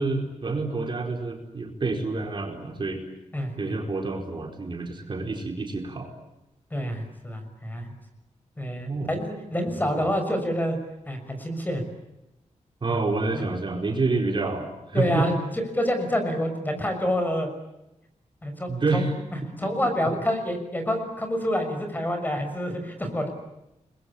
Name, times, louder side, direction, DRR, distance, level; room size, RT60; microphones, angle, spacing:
voice 1, 0.0-3.0 3.6-6.1 8.8-9.1 9.7-10.1 12.8-15.3 18.7-19.1, right 3 dB, 40° right, 2 dB, 4.8 m, -28 dB
voice 2, 3.3-3.7 6.7-7.9 8.6-10.8 11.1-11.8 13.3-13.4 14.9-15.4 15.7-17.5 18.4-19.1 19.6-23.3, equal, 15° left, 6 dB, 6.3 m, -27 dB
30.0 x 22.5 x 8.7 m, 0.91 s
wide cardioid pair, 130°, 12 cm